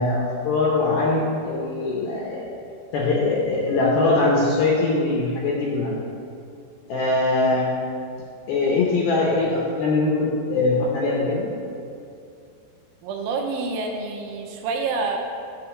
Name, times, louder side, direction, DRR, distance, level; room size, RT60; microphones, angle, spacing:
voice 1, 0.0-2.5 2.9-5.9 6.9-7.7 8.5-11.5, left 3 dB, 75° left, -3 dB, 2.3 m, -22 dB
voice 2, 13.0-15.2, right 4 dB, 90° right, 2 dB, 3.2 m, -27 dB
9.0 x 3.8 x 7.0 m, 2.5 s
omnidirectional pair, 5.3 m